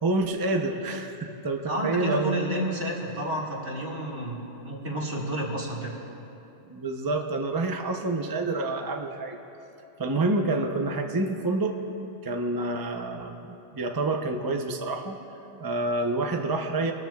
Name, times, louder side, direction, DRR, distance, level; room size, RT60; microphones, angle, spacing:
voice 1, 0.0-2.3 6.6-9.4 10.0-11.8 12.2-13.5 13.7-15.2 15.6-16.9, right 2 dB, 25° right, 3 dB, 0.5 m, -28 dB
voice 2, 1.6-5.9, right 1 dB, 65° right, -4 dB, 2.3 m, -30 dB
22.0 x 13.5 x 2.3 m, 2.8 s
omnidirectional pair, 1.2 m